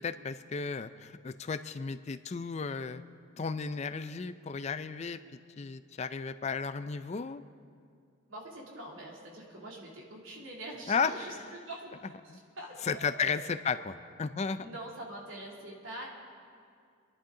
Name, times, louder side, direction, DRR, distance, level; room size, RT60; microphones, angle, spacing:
voice 1, 0.0-3.0 3.4-5.2 5.6-7.4 10.9-11.4 12.3-12.4 12.8-14.7, left 5 dB, 35° left, 12 dB, 0.4 m, -34 dB
voice 2, 8.3-13.4 14.6-16.1, right 1 dB, 75° right, -2 dB, 2.8 m, -44 dB
27.0 x 11.0 x 3.8 m, 2.2 s
head